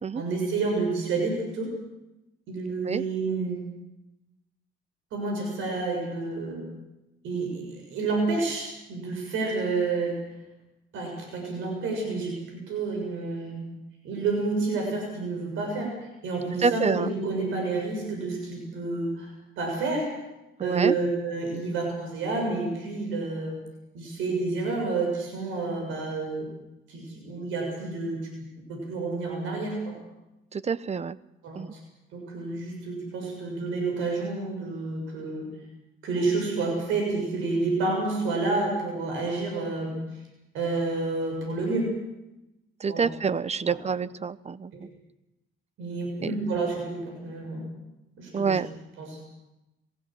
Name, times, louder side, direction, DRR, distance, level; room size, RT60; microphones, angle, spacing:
voice 1, 0.1-1.7 2.5-3.6 5.1-6.6 7.2-10.2 10.9-13.6 14.0-15.9 16.2-20.1 20.6-23.6 23.9-26.5 26.9-28.2 28.5-29.9 31.4-31.8 32.1-35.5 36.0-39.9 40.5-41.9 42.9-43.1 43.7-43.8 44.7-44.8 45.8-47.7 48.2-48.6 49.0-49.2, right 3 dB, 90° right, 1 dB, 6.9 m, -29 dB
voice 2, 16.6-17.1 20.6-20.9 30.5-31.2 31.6-31.7 42.8-44.9 46.2-46.3 48.3-48.7, right 5 dB, 35° right, 17 dB, 0.8 m, -27 dB
27.0 x 15.5 x 7.8 m, 0.95 s
cardioid pair, 90°, 20 cm